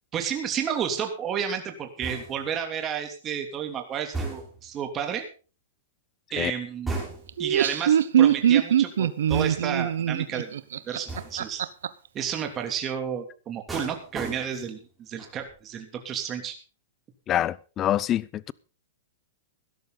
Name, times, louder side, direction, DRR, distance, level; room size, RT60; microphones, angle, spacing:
voice 1, 0.1-5.2 6.3-7.0 7.4-10.5 10.8-11.6 12.1-16.5, right 8 dB, 25° right, 3.0 m, -31 dB
sound 1, 2.0-2.6 4.1-4.7 6.9-7.5 9.3-9.9 11.1-11.5 13.7-14.8 15.2-15.5, right 2 dB, 10° right, 6.6 m, -35 dB
Laughter, 7.3-11.9, right 10 dB, 75° right, 1.0 m, -22 dB
voice 2, 17.3-18.5, left 12 dB, 25° left, 0.6 m, -26 dB
17.0 x 12.5 x 4.1 m
hypercardioid pair, 135°, 0 cm